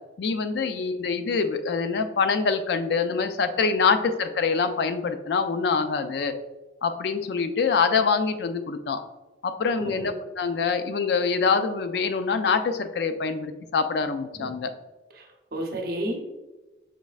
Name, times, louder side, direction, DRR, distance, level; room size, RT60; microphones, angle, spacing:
voice 1, 0.2-6.3 6.8-9.0 9.4-14.7, left 5 dB, 60° left, 8 dB, 0.3 m, -25 dB
voice 2, 15.2-16.3, equal, 50° right, 2 dB, 0.7 m, -32 dB
5.2 x 3.1 x 2.4 m, 1.1 s
head